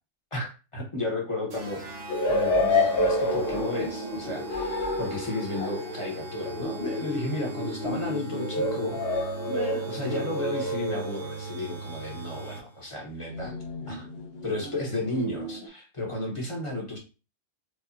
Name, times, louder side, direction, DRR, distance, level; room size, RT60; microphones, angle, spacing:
voice 1, 0.3-2.0 2.3-13.5 13.9-14.0 14.4-17.0, left 2 dB, 25° left, -1 dB, 1.1 m, -33 dB
sound 1, 1.5-12.9, right 4 dB, 60° right, 1.1 m, -40 dB
sound 2, 2.1-11.5 13.3-15.7, left 2 dB, 55° left, 0.9 m, -29 dB
4.8 x 2.4 x 2.8 m, 0.32 s
omnidirectional pair, 1.3 m